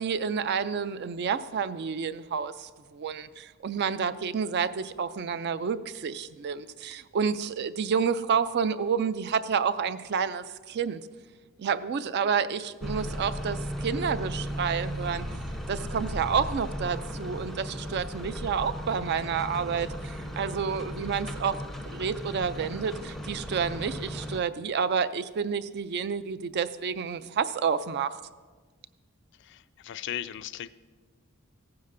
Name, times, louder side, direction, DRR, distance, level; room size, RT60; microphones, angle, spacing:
voice 1, 0.0-11.0 11.6-15.3 15.7-21.6 21.9-28.2, right 6 dB, 50° right, 14 dB, 0.4 m, -29 dB
sound 1, 12.8-24.4, equal, ahead, 0.5 m, -36 dB
voice 2, 29.4-30.7, left 11 dB, 55° left, 14 dB, 0.3 m, -37 dB
15.5 x 9.4 x 2.6 m, 1.4 s
head